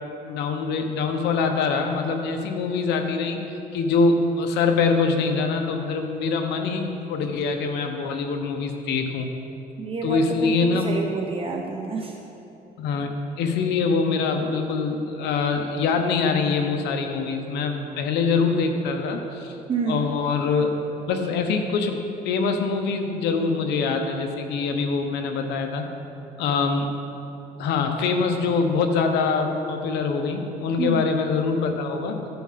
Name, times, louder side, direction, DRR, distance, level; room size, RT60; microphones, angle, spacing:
voice 1, 0.3-9.3 10.0-11.0 12.8-13.1 13.4-19.6 19.9-20.8 21.1-22.0 22.2-25.8 26.4-26.9 27.6-32.2, left 4 dB, 80° left, 5 dB, 1.1 m, -24 dB
voice 2, 9.8-12.2 19.7-20.1 30.8-31.1, right 4 dB, 35° right, 2 dB, 0.8 m, -28 dB
13.5 x 5.7 x 5.8 m, 2.9 s
cardioid pair, 110°, 17 cm